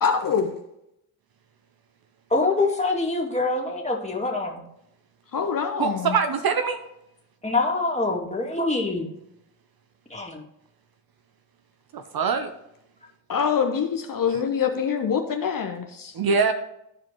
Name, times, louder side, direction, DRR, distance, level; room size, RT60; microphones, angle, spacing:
voice 1, 0.0-0.5 5.3-6.1 13.3-16.1, left 6 dB, 40° left, 4 dB, 1.0 m, -25 dB
voice 2, 2.3-4.6 7.4-9.1 10.1-10.4, left 3 dB, 15° left, -1 dB, 2.4 m, -25 dB
voice 3, 5.8-6.8 11.9-12.5 14.3-14.4 16.1-16.5, right 5 dB, 45° right, 8 dB, 0.8 m, -23 dB
14.0 x 4.9 x 3.0 m, 0.82 s
hypercardioid pair, 45°, 49 cm